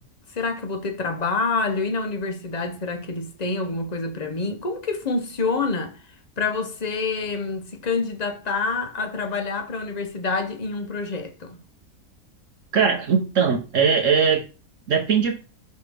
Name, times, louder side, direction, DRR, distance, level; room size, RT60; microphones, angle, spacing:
voice 1, 0.3-6.0 6.4-11.6, left 4 dB, 40° left, 0.6 m, -27 dB
voice 2, 12.7-14.4 14.9-15.3, right 6 dB, 55° right, 1.1 m, -20 dB
5.7 x 5.3 x 3.4 m
omnidirectional pair, 1.7 m